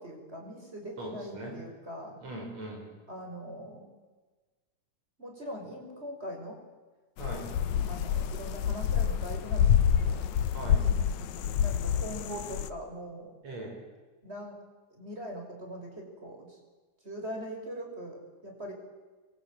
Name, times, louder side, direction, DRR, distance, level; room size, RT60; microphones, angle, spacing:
voice 1, 0.0-2.2 3.1-3.9 5.2-6.6 7.8-10.3 11.6-13.3 14.2-14.6 14.9-16.6 17.0-18.7, equal, 20° right, 2 dB, 5.9 m, -41 dB
voice 2, 1.0-1.6 2.2-2.9 7.2-7.5 10.5-10.8 13.4-13.8, right 1 dB, 60° right, 0 dB, 7.7 m, -40 dB
sound 1, 7.2-12.7, left 8 dB, 80° left, 2.4 m, -27 dB
25.5 x 23.0 x 8.8 m, 1.3 s
omnidirectional pair, 3.3 m